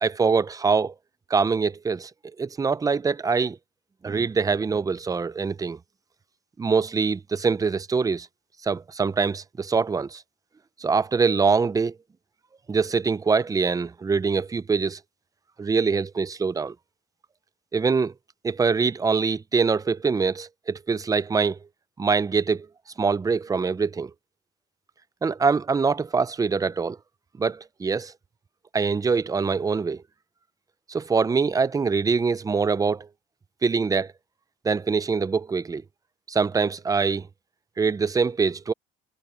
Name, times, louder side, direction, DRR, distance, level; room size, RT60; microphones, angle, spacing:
voice 1, 0.0-0.9 1.3-2.1 2.4-3.6 4.0-5.8 6.6-8.3 8.6-10.2 10.8-12.0 12.7-15.0 15.6-16.7 17.7-18.1 18.4-21.6 22.0-22.7 23.0-24.1 25.2-27.0 27.4-28.1 28.7-30.0 30.9-33.1 33.6-34.1 34.6-35.8 36.3-37.3 37.8-38.7, right 5 dB, 20° right, 0.6 m, -24 dB
cardioid pair, 110°, 17 cm